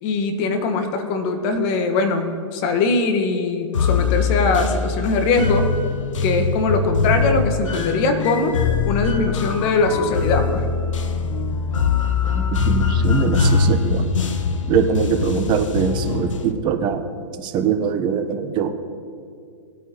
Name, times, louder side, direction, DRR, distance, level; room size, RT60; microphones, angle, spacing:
voice 1, 0.0-5.7 6.2-10.7, left 3 dB, 40° left, 6 dB, 1.4 m, -21 dB
sound 1, 3.7-16.5, left 5 dB, 80° left, 0.8 m, -22 dB
voice 2, 12.3-14.0 14.7-17.0 17.4-18.7, right 7 dB, 30° right, 7 dB, 0.9 m, -22 dB
19.0 x 9.1 x 3.0 m, 2.3 s
hypercardioid pair, 120°, 16 cm